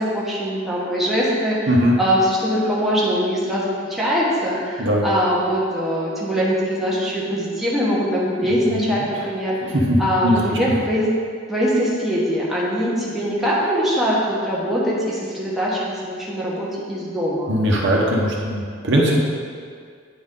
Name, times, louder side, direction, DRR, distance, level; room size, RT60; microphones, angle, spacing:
voice 1, 0.0-11.1 11.5-17.5, equal, ahead, -7 dB, 1.1 m, -22 dB
voice 2, 1.7-2.0 4.8-5.0 8.6-8.9 9.7-10.4 17.5-19.2, equal, 60° right, -3 dB, 0.9 m, -19 dB
9.2 x 4.0 x 3.7 m, 2.1 s
head